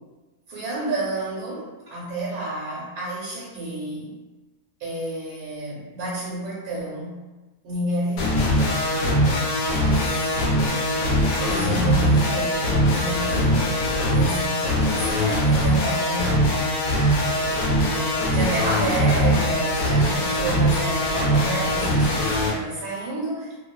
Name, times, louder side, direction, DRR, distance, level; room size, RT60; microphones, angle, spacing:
voice 1, 0.5-4.1 4.8-7.2 7.6-8.4 9.7-10.6 11.4-13.6 14.1-16.5 17.9-23.6, right 1 dB, 85° right, -5 dB, 1.1 m, -30 dB
sound 1, 8.2-22.5, equal, 80° left, 1.1 m, -21 dB
2.6 x 2.3 x 2.2 m, 1.2 s
omnidirectional pair, 1.5 m